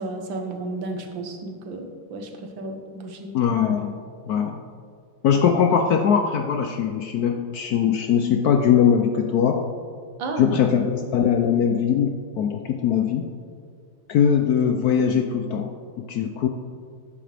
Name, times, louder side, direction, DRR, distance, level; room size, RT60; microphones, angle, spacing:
voice 1, 0.0-3.4 10.2-10.5, right 2 dB, 65° right, 4 dB, 1.8 m, -33 dB
voice 2, 3.3-4.0 4.3-4.6 5.2-9.6 10.4-13.3 14.1-15.7 16.0-16.5, left 7 dB, 90° left, 4 dB, 0.8 m, -21 dB
13.0 x 9.8 x 3.4 m, 2.1 s
omnidirectional pair, 2.4 m